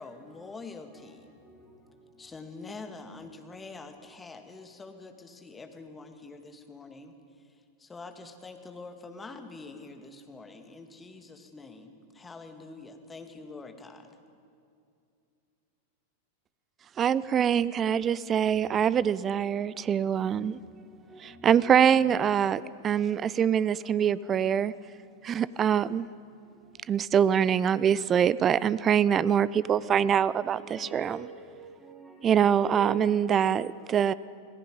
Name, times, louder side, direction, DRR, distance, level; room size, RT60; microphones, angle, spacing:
voice 1, 0.0-1.3 2.2-14.2, left 3 dB, 15° left, 1.9 m, -45 dB
voice 2, 17.0-20.6 21.4-24.7 25.2-26.1 26.9-31.2 32.2-34.1, right 8 dB, 25° right, 0.4 m, -24 dB
voice 3, 19.2-19.8 20.1-20.5 21.1-22.8 23.1-23.5 24.6-24.8 27.2-27.4 28.5-28.6 30.4-34.2, right 2 dB, 5° right, 3.3 m, -47 dB
27.0 x 18.0 x 5.4 m
figure-of-eight pair, 90°, 0 cm